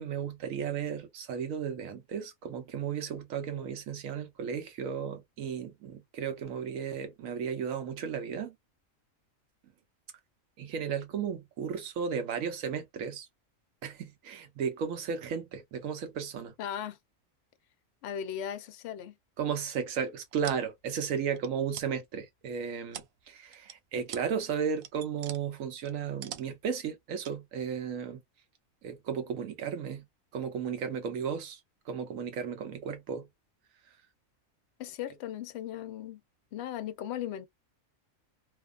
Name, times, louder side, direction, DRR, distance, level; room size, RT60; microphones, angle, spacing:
voice 1, 0.0-8.5 10.6-13.3 13.8-16.5 19.4-28.2 28.8-30.1 30.3-31.6 31.9-33.3, right 7 dB, 80° right, 1.1 m, -34 dB
voice 2, 16.6-17.0 18.0-19.2 34.8-36.2 36.5-37.5, left 10 dB, 65° left, 0.7 m, -37 dB
sound 1, 20.1-20.7 21.3-21.9 22.4-23.2 23.5-23.7 24.1-24.3 24.6-25.4 25.9-26.7 27.2-27.4, right 9 dB, 65° right, 0.7 m, -44 dB
2.8 x 2.2 x 2.3 m
omnidirectional pair, 1.4 m